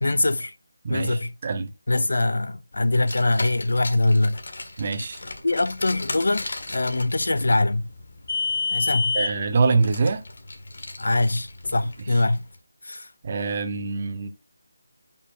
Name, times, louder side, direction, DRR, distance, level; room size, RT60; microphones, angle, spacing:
voice 1, 0.0-0.6 0.9-1.3 1.9-4.4 5.4-7.9 8.7-9.1 11.0-12.4 12.8-13.1, left 2 dB, 80° left, 0.6 m, -23 dB
voice 2, 0.8-1.7 4.8-5.2 9.1-10.2 13.2-14.3, right 4 dB, 30° right, 0.7 m, -24 dB
Car, 2.9-12.4, left 4 dB, 65° left, 1.5 m, -32 dB
5.7 x 5.0 x 4.3 m
figure-of-eight pair, 175°, 0 cm